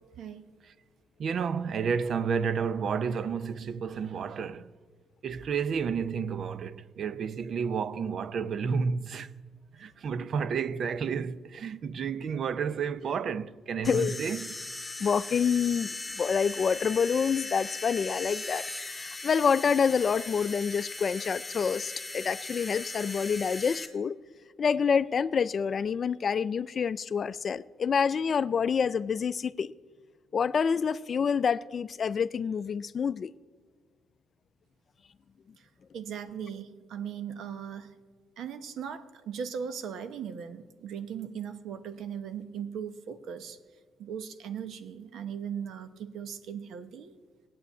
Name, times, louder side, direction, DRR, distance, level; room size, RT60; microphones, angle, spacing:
voice 1, 1.2-4.7 5.2-9.3 9.8-14.5, right 6 dB, 60° right, 0.6 m, -31 dB
voice 2, 13.8-14.2 15.0-15.9 16.1-24.2 24.6-29.7 30.3-33.3, left 6 dB, 45° left, 0.4 m, -27 dB
Fluorescent bulb sound, 13.8-23.9, left 2 dB, 15° left, 1.7 m, -39 dB
voice 3, 35.9-37.9 38.4-43.6 44.0-47.1, right 7 dB, 75° right, 1.0 m, -38 dB
18.0 x 8.5 x 8.3 m
cardioid pair, 90°, 0 cm